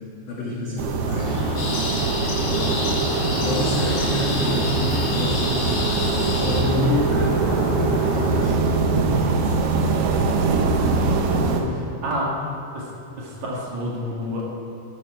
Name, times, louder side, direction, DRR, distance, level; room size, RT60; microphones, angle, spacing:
voice 1, 0.3-1.7 2.5-2.9 3.3-9.8, left 2 dB, 75° left, -5 dB, 1.1 m, -29 dB
sound 1, 0.8-11.6, right 4 dB, 75° right, 2.8 m, -23 dB
sound 2, 1.0-8.5, equal, 10° left, 2.2 m, -30 dB
sound 3, 1.6-6.6, left 2 dB, 45° left, 2.9 m, -30 dB
voice 2, 11.0-12.4 12.7-12.9 13.2-14.4, equal, 50° right, -4 dB, 2.7 m, -29 dB
12.5 x 12.0 x 4.7 m, 2.7 s
omnidirectional pair, 4.7 m